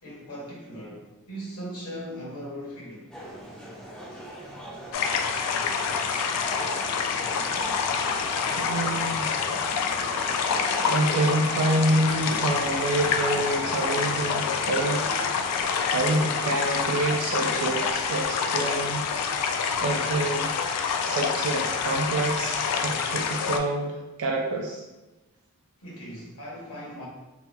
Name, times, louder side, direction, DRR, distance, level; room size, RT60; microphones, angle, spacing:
voice 1, 0.0-3.1 25.8-27.1, equal, 70° left, -4 dB, 1.0 m, -39 dB
sound 1, 3.1-17.9, equal, 5° left, 0.4 m, -40 dB
sound 2, 4.9-23.6, left 6 dB, 90° left, 0.3 m, -27 dB
voice 2, 8.6-9.4 10.8-15.1 15.9-19.0 19.6-20.5 21.0-24.9, right 2 dB, 75° right, 0 dB, 0.4 m, -27 dB
2.7 x 2.7 x 2.2 m, 1.0 s
head